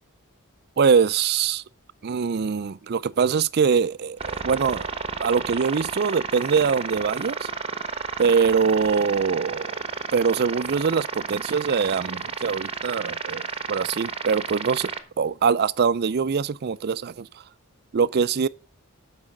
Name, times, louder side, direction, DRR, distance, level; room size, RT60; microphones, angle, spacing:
voice 1, 0.8-1.6 2.0-4.9 5.2-7.5 8.2-9.8 10.1-14.9 15.2-17.3 17.9-18.5, right 6 dB, 45° right, 0.4 m, -23 dB
sound 1, 4.2-15.0, right 5 dB, 25° right, 1.0 m, -31 dB
12.5 x 4.9 x 6.5 m
head